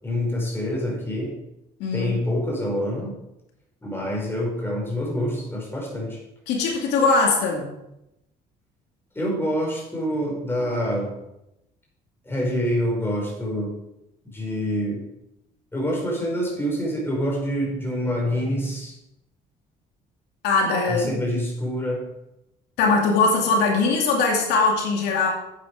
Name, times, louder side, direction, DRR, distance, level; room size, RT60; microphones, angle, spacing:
voice 1, 0.0-1.4 1.9-3.2 3.8-6.2 9.2-11.2 12.3-13.8 14.3-15.0 15.7-19.0 20.9-22.0, equal, 15° left, -2 dB, 5.2 m, -26 dB
voice 2, 1.8-2.2 6.5-7.7 20.4-21.2 22.8-25.3, left 4 dB, 90° left, 0 dB, 2.5 m, -21 dB
11.0 x 8.8 x 4.9 m, 0.87 s
cardioid pair, 110°, 17 cm